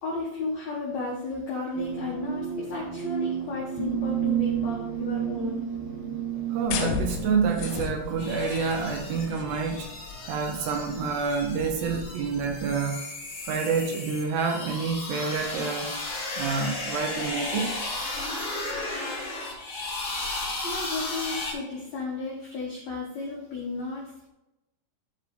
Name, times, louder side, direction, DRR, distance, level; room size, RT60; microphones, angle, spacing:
voice 1, 0.0-5.7 20.6-24.0, left 3 dB, 65° left, -4 dB, 1.8 m, -33 dB
sound 1, 1.7-7.8, right 9 dB, 90° right, 1.4 m, -31 dB
voice 2, 6.5-9.9 10.2-13.0 13.4-15.9 16.4-17.7, right 5 dB, 75° right, 3 dB, 2.9 m, -28 dB
sound 2, 6.7-12.7, left 5 dB, 85° left, 3.6 m, -36 dB
sound 3, 8.2-21.5, left 2 dB, 40° left, 4.0 m, -35 dB
12.5 x 4.7 x 3.5 m, 0.94 s
omnidirectional pair, 5.3 m